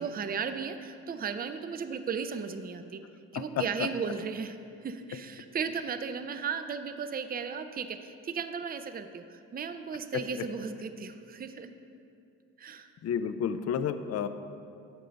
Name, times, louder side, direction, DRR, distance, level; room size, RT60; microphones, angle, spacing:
voice 1, 0.0-3.0 3.3-4.6 4.8-11.7 12.6-12.9, right 6 dB, 30° right, 9 dB, 0.5 m, -35 dB
voice 2, 3.3-3.9 10.4-10.5 13.0-14.3, left 8 dB, 55° left, 11 dB, 0.5 m, -31 dB
10.0 x 3.9 x 6.8 m, 2.5 s
cardioid pair, 90°, 30 cm